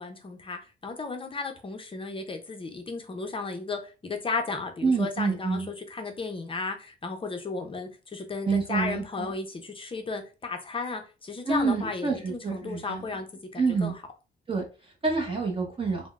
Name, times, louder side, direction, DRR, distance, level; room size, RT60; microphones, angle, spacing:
voice 1, 0.0-13.3 13.5-13.9, left 3 dB, 25° left, 0.5 m, -34 dB
voice 2, 4.8-5.7 8.5-9.3 11.4-13.2 13.6-13.9 14.5-16.1, right 4 dB, 25° right, 0.7 m, -28 dB
3.5 x 2.0 x 2.3 m
cardioid pair, 90°, 20 cm